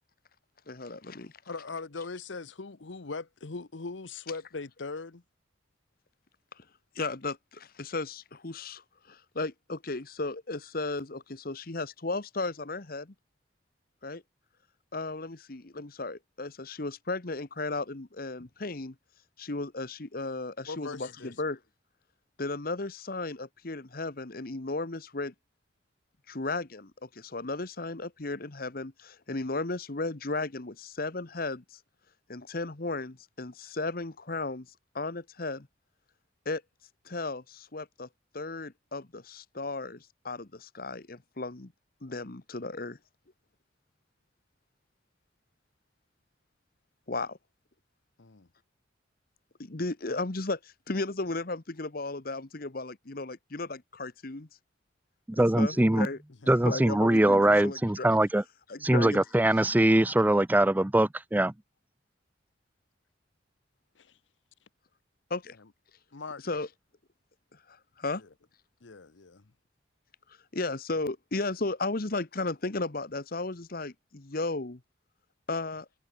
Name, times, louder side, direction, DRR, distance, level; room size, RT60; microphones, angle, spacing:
voice 1, 0.7-1.3 6.6-6.7 6.9-13.1 14.0-14.2 14.9-18.9 19.4-21.6 22.4-25.3 26.3-31.8 32.3-35.7 36.4-36.6 37.0-38.1 38.3-41.7 42.0-43.0 47.1-47.4 49.6-54.5 55.3-56.2 56.6-58.1 58.7-59.2 65.3-65.6 66.4-66.7 67.5-68.2 70.5-74.8 75.5-75.9, left 3 dB, 50° left, 1.2 m, -35 dB
voice 2, 1.5-5.2 20.7-21.3 48.2-48.5 55.7-55.8 56.4-56.5 64.0-64.2 66.1-66.4 68.2-68.3 68.8-69.5, left 4 dB, 75° left, 1.0 m, -40 dB
voice 3, 55.3-56.1 56.5-58.4 58.8-61.5, right 1 dB, 10° right, 0.4 m, -22 dB
head